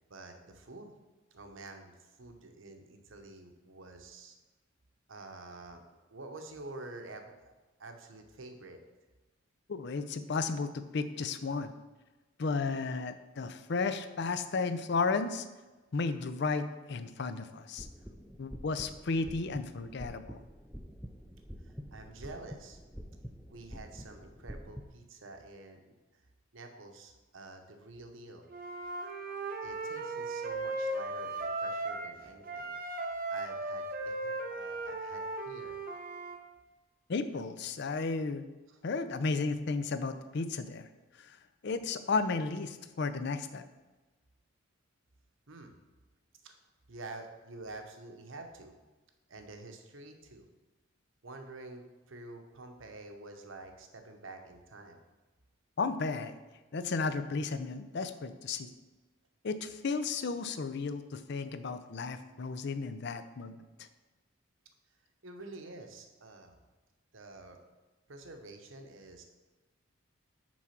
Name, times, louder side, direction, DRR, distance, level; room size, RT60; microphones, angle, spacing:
voice 1, 0.1-0.9 1.3-4.4 5.1-5.8 6.1-7.5 7.8-8.8 21.6-22.8 23.5-26.0 26.5-28.5 29.6-32.7 33.3-35.8 38.7-38.8 45.5-45.7 46.4-46.6 46.9-48.7 49.3-50.5 51.2-55.0 65.2-66.6 67.1-67.6 68.1-69.2, right 2 dB, 70° right, 5 dB, 1.0 m, -48 dB
voice 2, 9.7-11.7 12.4-15.5 15.9-17.9 18.4-20.4 37.1-38.4 38.8-40.9 41.2-41.4 41.6-43.6 55.8-56.4 56.7-58.7 59.4-63.9, left 4 dB, 55° left, 11 dB, 0.5 m, -33 dB
sound 1, 17.8-24.8, equal, ahead, 0.4 m, -47 dB
Wind instrument woodwind instrument, 28.5-32.1 32.4-36.4, right 2 dB, 45° right, 0.8 m, -37 dB
6.1 x 4.7 x 5.8 m, 1.2 s
head